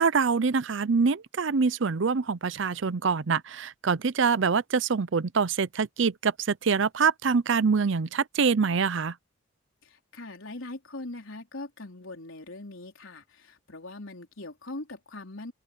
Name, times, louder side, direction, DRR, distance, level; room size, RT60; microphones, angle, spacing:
voice 1, 0.0-9.1, right 5 dB, 65° right, 0.6 m, -25 dB
voice 2, 9.8-15.5, left 2 dB, 80° left, 3.9 m, -41 dB
open air
head